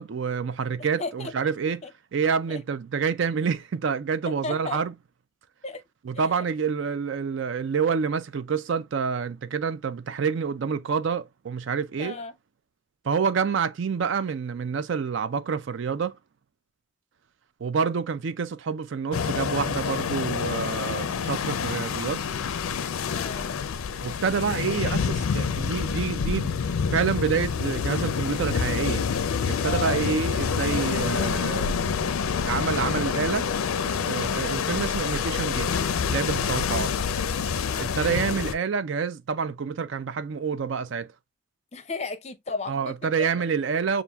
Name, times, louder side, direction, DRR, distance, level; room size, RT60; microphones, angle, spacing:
voice 1, 0.0-1.8 2.1-4.9 6.0-12.2 13.1-16.2 17.6-22.2 24.0-29.1 29.5-32.1 32.4-33.5 33.8-35.7 36.1-36.9 37.8-41.1 42.7-44.0, right 6 dB, 60° right, 0.4 m, -28 dB
voice 2, 0.8-1.3 1.8-1.9 2.5-2.6 4.3-4.8 5.6-5.8 6.1-6.3 12.0-12.4 23.0-23.5 29.6-30.1 37.6-38.0 41.7-43.1, left 3 dB, 30° left, 0.5 m, -35 dB
sound 1, 19.1-38.5, left 6 dB, 80° left, 0.4 m, -27 dB
6.9 x 2.5 x 2.3 m
head